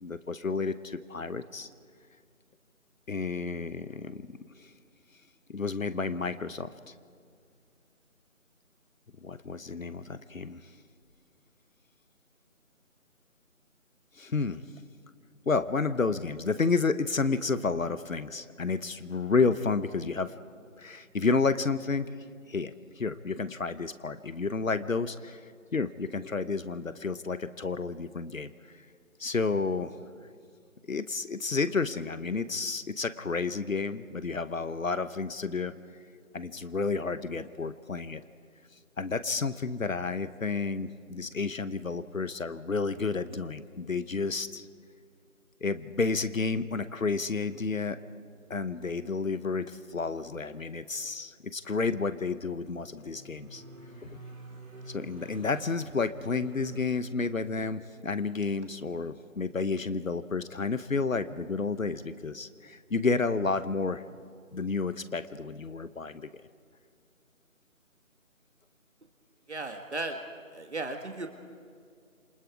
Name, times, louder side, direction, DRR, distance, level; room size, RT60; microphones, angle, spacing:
voice 1, 0.0-1.7 3.1-4.3 4.6-4.7 5.5-6.9 9.2-10.6 14.2-14.6 15.5-20.3 20.8-22.1 22.5-25.5 25.7-28.5 29.2-29.9 30.9-35.7 36.3-38.2 39.0-44.7 45.6-48.0 48.5-53.6 54.0-54.1 54.9-64.0 64.5-66.3, left 4 dB, 70° left, 13 dB, 1.0 m, -31 dB
sound 1, 47.1-48.0 48.3-49.1 49.4-49.5 52.0-57.8 60.7-60.8, right 1 dB, 85° right, 4.4 m, -49 dB
voice 2, 69.5-70.2 70.5-71.3, right 2 dB, 55° right, 5 dB, 1.7 m, -35 dB
27.5 x 23.5 x 4.8 m, 2.2 s
figure-of-eight pair, 165°, 41 cm